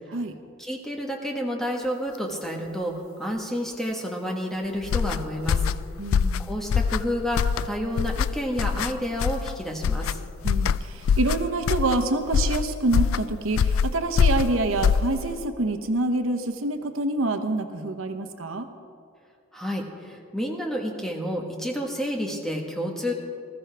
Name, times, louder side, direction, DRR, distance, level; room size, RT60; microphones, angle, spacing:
voice 1, 0.6-5.6 6.4-10.2 19.5-23.1, equal, ahead, 0 dB, 1.4 m, -30 dB
sound 1, 4.8-15.5, left 6 dB, 80° left, 0.3 m, -24 dB
voice 2, 6.0-6.5 10.4-18.7, right 2 dB, 85° right, 7 dB, 0.9 m, -27 dB
19.5 x 14.0 x 3.4 m, 2.3 s
head